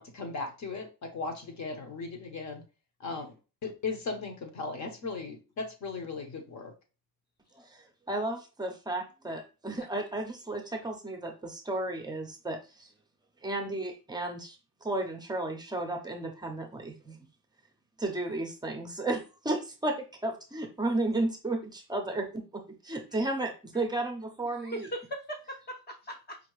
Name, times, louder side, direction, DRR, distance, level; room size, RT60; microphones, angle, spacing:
voice 1, 0.0-2.6 3.0-3.3 3.6-6.7, left 4 dB, 45° left, 5 dB, 1.1 m, -37 dB
voice 2, 3.0-3.3 24.6-26.4, equal, 25° left, 3 dB, 0.8 m, -40 dB
voice 3, 7.6-12.9 13.4-17.2 18.0-24.9, right 2 dB, 10° right, 4 dB, 0.7 m, -33 dB
5.2 x 2.8 x 3.1 m, 0.32 s
cardioid pair, 155°, 39 cm